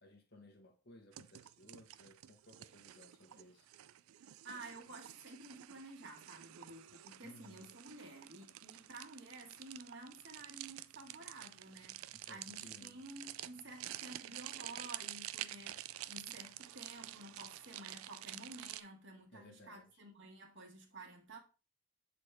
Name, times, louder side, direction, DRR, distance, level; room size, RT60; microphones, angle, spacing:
voice 1, 0.0-3.7 7.2-7.7 12.1-13.0 19.3-20.0, left 1 dB, 50° left, 1.3 m, -59 dB
sound 1, 1.1-18.8, right 14 dB, 80° right, 0.3 m, -49 dB
voice 2, 4.4-21.4, right 2 dB, 55° right, 1.5 m, -52 dB
7.9 x 4.2 x 3.4 m
head